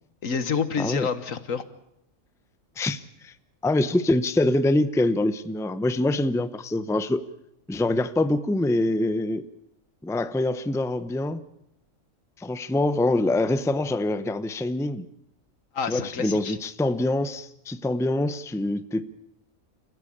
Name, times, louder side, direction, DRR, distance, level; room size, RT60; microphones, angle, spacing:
voice 1, 0.2-1.7 15.7-16.6, left 5 dB, 80° left, 12 dB, 1.7 m, -28 dB
voice 2, 0.8-1.1 2.8-3.3 3.6-7.2 7.7-9.5 10.0-11.4 12.4-15.1 15.8-19.1, left 2 dB, 5° left, 13 dB, 0.6 m, -25 dB
28.5 x 15.5 x 8.7 m, 0.79 s
omnidirectional pair, 1.4 m